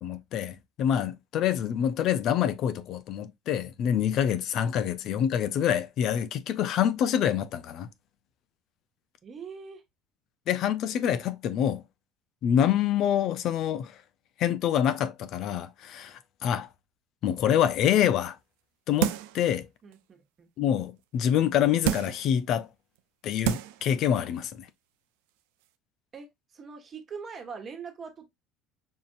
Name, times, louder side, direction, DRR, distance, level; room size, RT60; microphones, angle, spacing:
voice 1, 0.0-7.9 10.5-11.8 12.4-13.9 14.4-16.7 17.2-18.4 18.9-19.7 20.6-22.7 23.2-24.7, left 9 dB, 60° left, 0.5 m, -26 dB
voice 2, 9.2-9.8 19.8-20.5 26.1-28.3, right 5 dB, 40° right, 1.3 m, -42 dB
sound 1, 19.0-19.4 19.9-20.0 21.8-22.3 23.0-23.1 23.4-23.9 24.2-24.3, right 13 dB, 80° right, 0.4 m, -28 dB
5.5 x 2.5 x 2.5 m
supercardioid pair, 85°, 0 cm